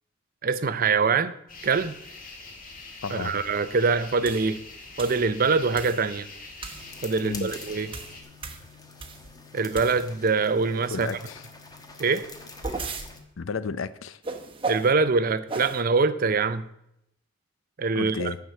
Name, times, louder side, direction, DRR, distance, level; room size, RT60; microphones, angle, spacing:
voice 1, 0.4-1.3 1.6-1.9 3.1-4.6 5.0-6.3 7.0-7.9 9.5-11.1 12.0-12.3 14.7-16.7 17.8-18.3, right 4 dB, 45° right, 13 dB, 0.6 m, -24 dB
sound 1, 1.5-8.2, left 3 dB, 45° left, 1.8 m, -44 dB
voice 2, 3.0-3.4 7.2-7.5 10.9-11.4 13.4-14.2 17.9-18.4, left 5 dB, 75° left, 15 dB, 0.6 m, -32 dB
sound 2, 4.2-4.5 5.0-5.2 5.7-6.1 6.6-6.9 7.3-9.3 9.7-10.2 12.2-13.1 14.2-14.9 15.5-15.8, right 3 dB, 25° right, 1.0 m, -35 dB
sound 3, 6.7-13.2, left 3 dB, 20° left, 1.2 m, -46 dB
12.0 x 4.7 x 8.0 m, 0.78 s
head